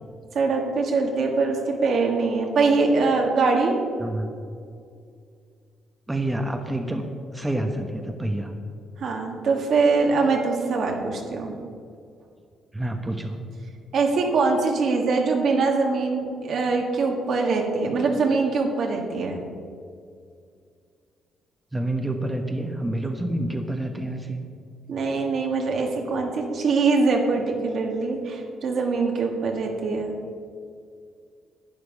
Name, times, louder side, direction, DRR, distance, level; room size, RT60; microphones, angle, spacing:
voice 1, 0.3-3.8 9.0-11.6 13.9-19.4 24.9-30.1, right 4 dB, 65° right, 1 dB, 1.9 m, -23 dB
voice 2, 4.0-4.3 6.1-8.5 12.7-13.4 21.7-24.4, right 1 dB, 10° right, 3 dB, 1.1 m, -28 dB
11.5 x 9.3 x 5.3 m, 2.3 s
cardioid pair, 90°, 0 cm